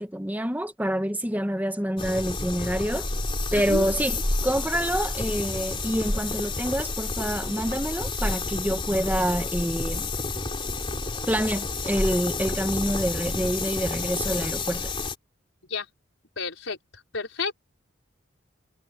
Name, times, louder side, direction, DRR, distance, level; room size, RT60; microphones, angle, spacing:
voice 1, 0.0-3.1 3.5-10.1 11.2-14.9, equal, 10° right, 1.4 m, -27 dB
sound 1, 2.0-15.1, left 3 dB, 25° left, 3.3 m, -30 dB
voice 2, 3.5-3.9 15.6-15.9 16.4-17.5, left 4 dB, 80° left, 4.8 m, -32 dB
head